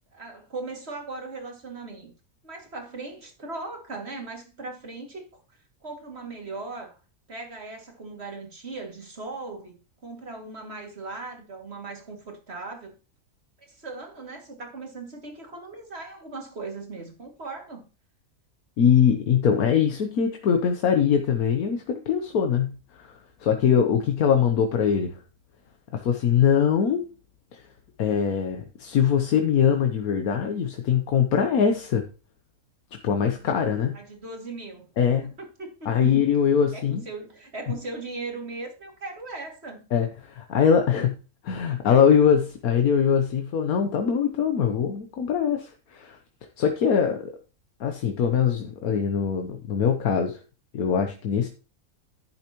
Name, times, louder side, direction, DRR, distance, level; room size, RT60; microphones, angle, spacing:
voice 1, 0.1-2.1 2.4-5.3 5.8-7.0 7.3-13.0 13.6-17.9 33.9-36.2 36.7-39.9, right 3 dB, 45° right, 2.6 m, -38 dB
voice 2, 18.8-25.2 25.9-27.0 27.5-27.6 28.0-32.1 33.0-34.0 35.0-35.3 35.8-37.0 39.9-41.2 41.4-46.2 46.6-47.3 47.8-50.4 50.7-51.5, left 7 dB, 85° left, 1.4 m, -22 dB
11.5 x 8.5 x 3.0 m
omnidirectional pair, 1.5 m